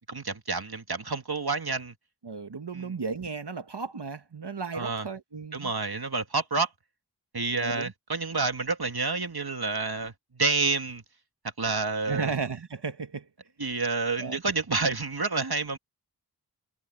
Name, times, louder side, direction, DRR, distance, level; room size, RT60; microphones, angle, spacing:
voice 1, 0.1-1.9 2.7-2.9 4.7-5.1 5.5-6.7 7.3-11.0 11.6-12.3 13.6-15.8, right 3 dB, 65° right, 2.0 m, -29 dB
voice 2, 2.2-5.7 7.6-7.9 12.1-13.3 14.2-14.4, right 5 dB, 85° right, 1.4 m, -34 dB
wide cardioid pair, 50°, 40 cm